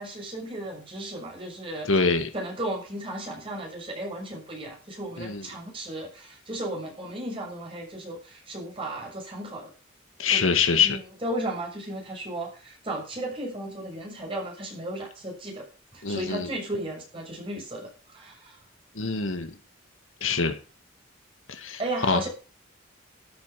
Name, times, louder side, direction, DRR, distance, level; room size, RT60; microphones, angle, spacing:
voice 1, 0.0-1.9 2.3-9.7 10.3-10.4 10.7-15.7 15.9-18.6 21.8-22.3, right 1 dB, 25° right, -1 dB, 6.8 m, -35 dB
voice 2, 1.9-2.3 5.2-5.4 10.2-11.0 16.0-16.5 19.0-19.5 20.2-20.5 21.5-22.2, left 5 dB, 80° left, 8 dB, 1.9 m, -24 dB
13.0 x 8.7 x 5.9 m, 0.35 s
head